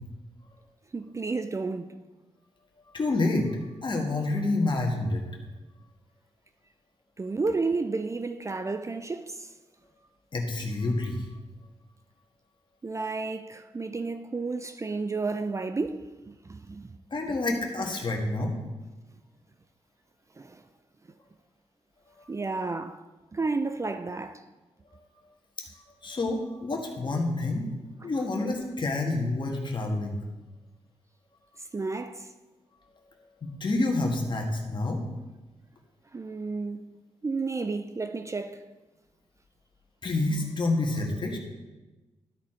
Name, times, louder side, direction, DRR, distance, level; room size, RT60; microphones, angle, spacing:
voice 1, 0.9-1.9 7.2-9.5 12.8-17.0 20.4-20.6 22.3-23.0 23.3-24.4 31.6-32.3 36.1-36.9 37.2-38.7, right 3 dB, 25° right, 0.4 m, -32 dB
voice 2, 2.9-5.2 10.3-11.3 17.1-18.5 22.2-22.3 26.0-27.7 28.0-30.2 33.0-35.0 40.0-41.4, left 2 dB, 45° left, 1.6 m, -28 dB
12.5 x 4.2 x 4.4 m
cardioid pair, 70°, 11 cm